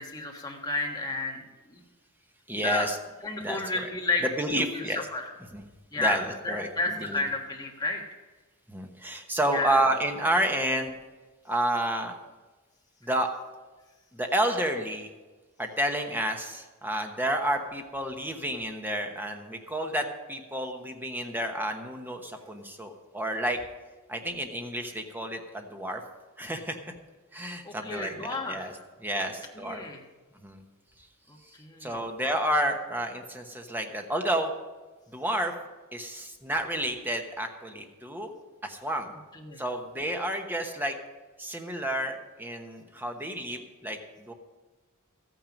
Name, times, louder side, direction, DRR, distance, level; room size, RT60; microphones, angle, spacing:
voice 1, 0.0-1.8 2.5-2.9 3.2-4.2 4.5-4.8 5.1-5.3 5.9-8.0 9.5-9.8 27.6-28.8 29.2-29.3 29.5-30.0 31.3-32.0 39.3-39.6, left 3 dB, 20° left, 0 dB, 1.5 m, -32 dB
voice 2, 2.5-3.0 3.4-3.8 4.4-5.0 5.5-5.6 6.0-6.7 7.0-7.2 8.7-11.0 11.4-12.2 13.0-13.3 14.1-15.1 15.6-23.6 24.1-26.0 26.4-26.8 27.3-28.7 29.0-29.8 30.4-30.6 31.8-34.5 35.1-35.5 35.9-38.3 38.6-39.1 39.6-40.9 41.4-44.3, right 1 dB, 10° right, 4 dB, 1.0 m, -30 dB
13.5 x 9.1 x 5.3 m, 1.3 s
head